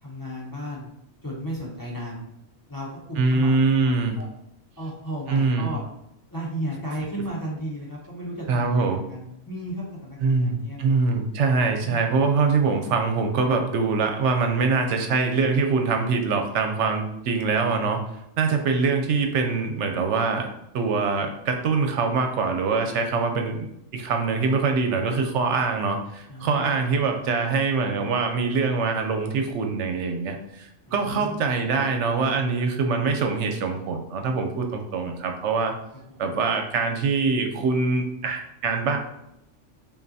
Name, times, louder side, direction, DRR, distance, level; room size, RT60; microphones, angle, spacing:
voice 1, 0.0-0.9 1.2-2.2 2.7-3.6 4.2-4.3 4.8-5.8 6.3-10.8 26.3-26.7 30.9-31.4 36.1-36.2, equal, 20° left, -6 dB, 0.8 m, -34 dB
voice 2, 3.2-4.2 5.3-5.7 8.5-9.0 10.2-18.0 18.4-20.5 20.7-35.7 36.2-39.0, right 4 dB, 75° right, 4 dB, 0.9 m, -24 dB
5.2 x 2.4 x 2.7 m, 0.80 s
omnidirectional pair, 1.2 m